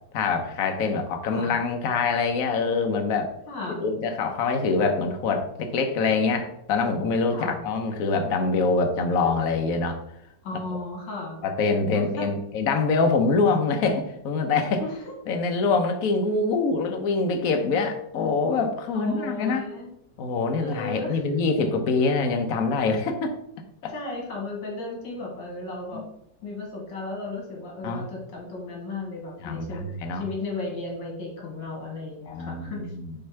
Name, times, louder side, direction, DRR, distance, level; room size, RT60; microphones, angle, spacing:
voice 1, 0.1-3.3 3.8-10.0 10.7-10.8 11.4-14.8 15.3-19.6 20.2-23.3 23.8-23.9 25.9-26.0 27.8-28.1 29.4-30.2 32.3-33.1, left 4 dB, 55° left, 5 dB, 1.1 m, -25 dB
voice 2, 3.5-3.9 7.3-7.6 10.4-11.4 11.9-12.3 14.8-15.1 18.9-19.9 20.6-21.2 23.9-26.0 26.4-32.9, left 3 dB, 75° left, -1 dB, 2.2 m, -35 dB
5.5 x 3.8 x 4.5 m, 0.75 s
omnidirectional pair, 2.0 m